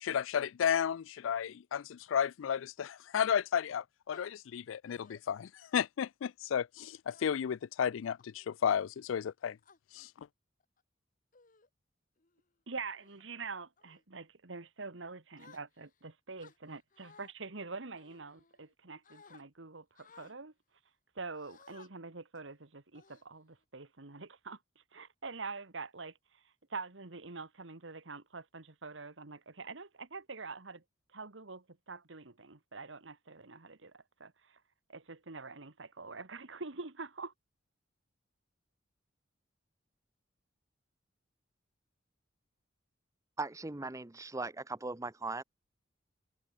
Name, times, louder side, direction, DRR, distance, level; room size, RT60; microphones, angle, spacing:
voice 1, 0.0-9.6 9.9-10.3, left 8 dB, 90° left, 0.4 m, -33 dB
sound 1, 4.1-4.3 4.9-5.2 5.7-6.0 7.1-7.6 8.2-8.5 9.2-9.8 10.6-10.8 11.3-11.7 12.2-12.4 12.9-13.2 13.8-14.0 15.4-16.0 16.4-17.3 18.0-18.7 19.0-19.4 20.0-20.4 21.4-21.9 22.4-22.5 22.9-23.6, left 5 dB, 45° left, 1.4 m, -60 dB
voice 2, 12.7-20.5 21.2-26.4 26.7-30.8 31.1-34.6 34.9-37.3, right 4 dB, 70° right, 1.7 m, -45 dB
voice 3, 43.4-45.4, right 3 dB, 15° right, 0.7 m, -39 dB
head